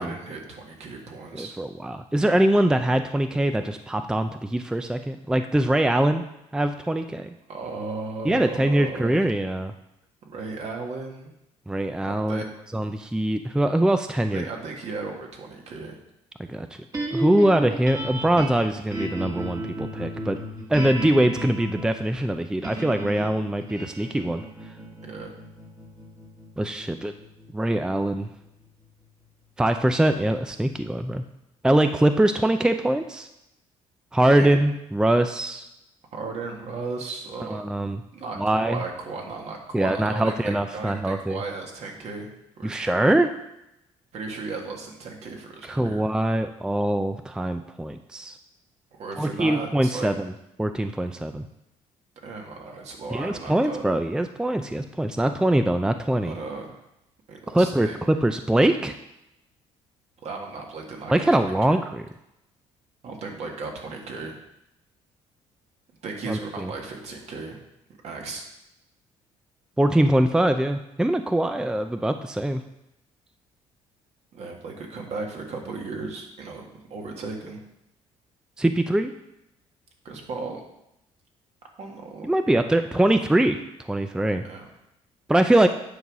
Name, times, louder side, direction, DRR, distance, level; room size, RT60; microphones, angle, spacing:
voice 1, 0.0-1.6 7.5-9.2 10.3-11.3 12.1-12.5 14.3-16.0 24.7-24.8 25.1-25.3 34.4-34.6 36.1-37.6 38.1-42.3 42.6-43.1 44.1-46.1 48.9-50.1 52.2-53.8 56.2-56.8 57.3-58.0 60.2-61.8 63.0-64.4 66.0-67.6 68.0-68.4 74.3-77.6 80.0-80.6 81.8-82.3 84.4-84.7, right 3 dB, 60° right, 1 dB, 1.9 m, -36 dB
voice 2, 1.3-6.2 6.5-7.3 8.2-9.7 11.7-12.5 12.7-14.4 16.5-16.7 17.1-20.4 20.7-24.4 26.6-27.1 27.5-28.3 29.6-31.2 31.6-33.3 34.1-35.7 37.5-38.0 38.4-38.8 39.7-41.4 42.6-43.3 45.6-48.4 49.2-50.3 50.6-51.4 53.1-56.3 57.5-58.9 61.1-62.0 66.3-66.7 69.8-72.6 78.6-79.1 82.2-83.6 83.9-84.4 85.3-85.7, right 1 dB, 5° right, 8 dB, 0.5 m, -23 dB
sound 1, 16.9-29.2, right 1 dB, 25° right, 1.7 m, -35 dB
9.6 x 3.9 x 6.1 m, 0.85 s
cardioid pair, 85°, 12 cm